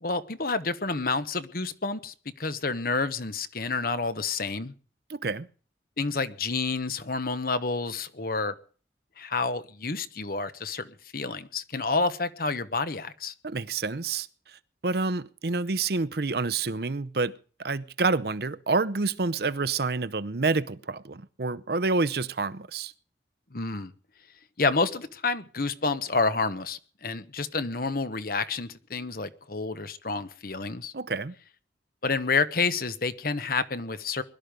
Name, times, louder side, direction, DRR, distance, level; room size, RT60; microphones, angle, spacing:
voice 1, 0.0-4.7 6.0-8.5 9.2-13.3 23.5-23.9 24.6-30.9 32.0-34.2, left 4 dB, 55° left, 1.2 m, -29 dB
voice 2, 5.1-5.5 13.4-14.3 14.8-22.9 30.9-31.3, right 3 dB, 60° right, 0.7 m, -28 dB
21.0 x 12.5 x 5.2 m
head